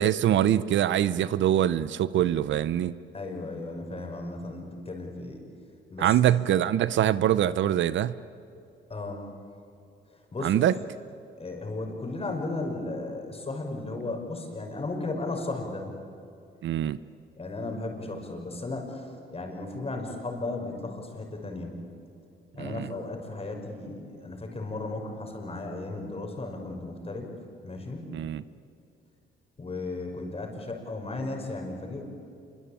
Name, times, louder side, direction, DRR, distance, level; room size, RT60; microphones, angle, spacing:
voice 1, 0.0-2.9 6.0-8.1 10.4-10.7 16.6-17.0 22.6-22.9 28.1-28.4, right 11 dB, 70° right, 16 dB, 0.8 m, -24 dB
voice 2, 3.1-5.4 5.9-6.3 8.9-9.2 10.3-10.7 11.4-16.0 17.4-21.8 22.5-27.3 27.6-28.1 29.6-32.2, left 2 dB, 30° left, 2 dB, 5.9 m, -35 dB
26.5 x 24.0 x 9.0 m, 2.6 s
cardioid pair, 90°, 20 cm